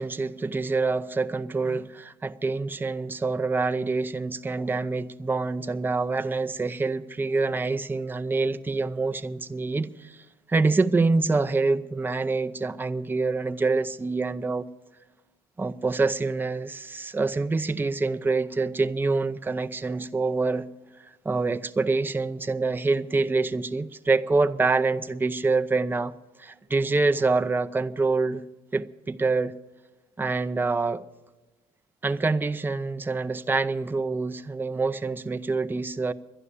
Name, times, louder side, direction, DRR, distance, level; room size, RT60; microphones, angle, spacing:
voice 1, 0.0-14.7 15.6-20.7 21.0-26.1 26.4-28.4 28.7-29.5 30.2-31.0 32.0-36.1, right 3 dB, 10° right, 0.5 m, -26 dB
11.0 x 11.0 x 8.2 m
cardioid pair, 110°, 17 cm